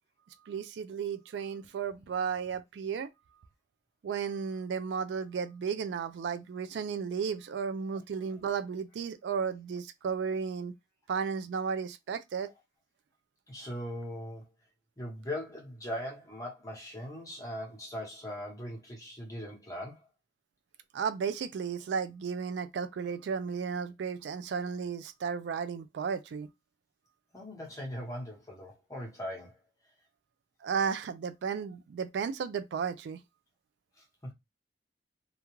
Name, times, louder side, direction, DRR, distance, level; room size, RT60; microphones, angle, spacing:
voice 1, 0.5-3.1 4.0-10.7 11.1-12.5 20.9-26.5 30.6-33.2, right 6 dB, 80° right, 0.3 m, -34 dB
voice 2, 13.5-14.5 15.0-20.1 27.3-29.6 34.2-34.3, equal, 20° left, 0.9 m, -40 dB
2.4 x 2.2 x 3.0 m
head